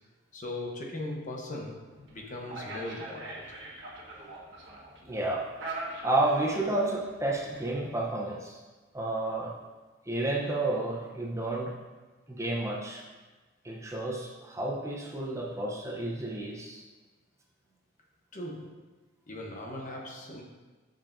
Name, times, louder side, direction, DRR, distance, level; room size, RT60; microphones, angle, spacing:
voice 1, 0.3-4.0 18.3-18.9 19.3-20.4, left 1 dB, 40° left, 0 dB, 1.0 m, -39 dB
sound 1, 1.9-7.8, right 2 dB, 60° right, 1.5 m, -43 dB
voice 2, 5.1-5.5 6.0-8.6 8.9-9.5 10.1-11.7 12.3-13.0 13.6-16.8, right 2 dB, 15° right, -2 dB, 0.8 m, -31 dB
9.5 x 6.5 x 2.7 m, 1.3 s
head